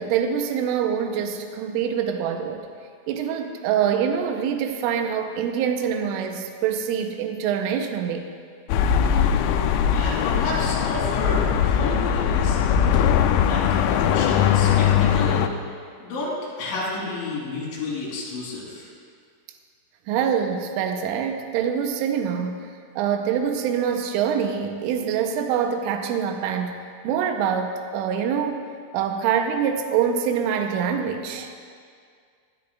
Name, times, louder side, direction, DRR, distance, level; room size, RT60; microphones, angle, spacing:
voice 1, 0.0-2.7 3.1-8.3 20.1-28.6 28.9-31.5, right 8 dB, 85° right, 5 dB, 3.1 m, -25 dB
sound 1, 8.7-15.5, left 8 dB, 85° left, 3.2 m, -20 dB
voice 2, 9.9-13.0 13.5-15.4 16.0-18.9, left 2 dB, 65° left, -6 dB, 5.3 m, -31 dB
19.5 x 11.0 x 2.4 m, 2.1 s
omnidirectional pair, 5.9 m